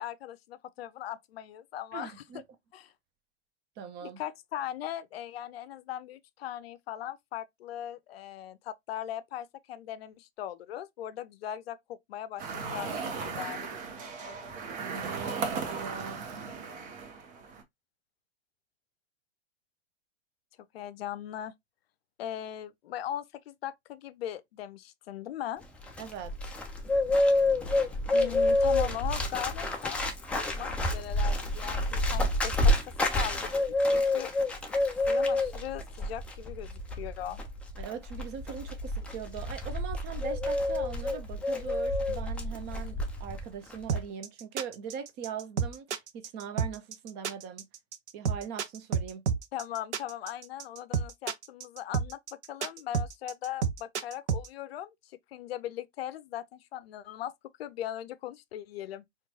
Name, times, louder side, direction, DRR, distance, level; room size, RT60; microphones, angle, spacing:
voice 1, 0.0-2.1 2.7-2.9 4.0-13.6 20.7-21.5 22.2-25.6 28.1-34.3 35.0-37.4 49.5-52.2 52.5-57.3 57.6-59.0, left 11 dB, 60° left, 0.6 m, -39 dB
voice 2, 1.9-2.4 3.8-4.2 14.8-16.2 26.0-26.3 37.8-47.7 48.1-49.2, right 7 dB, 30° right, 0.7 m, -41 dB
sound 1, 12.4-17.6, right 5 dB, 45° right, 1.1 m, -37 dB
Bird, 25.6-43.4 43.7-44.0, left 1 dB, 5° left, 0.3 m, -29 dB
sound 2, 43.9-54.5, right 6 dB, 70° right, 0.7 m, -30 dB
4.4 x 2.4 x 2.7 m
figure-of-eight pair, 95°, 35 cm